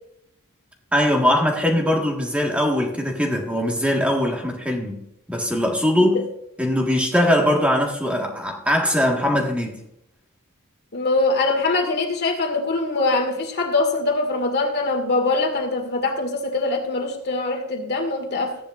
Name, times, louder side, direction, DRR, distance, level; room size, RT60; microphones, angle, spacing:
voice 1, 0.9-5.0 5.3-6.3 6.6-9.8, left 1 dB, 5° right, 1.6 m, -21 dB
voice 2, 10.9-18.6, left 3 dB, 50° left, 2.1 m, -23 dB
15.5 x 10.0 x 2.5 m
head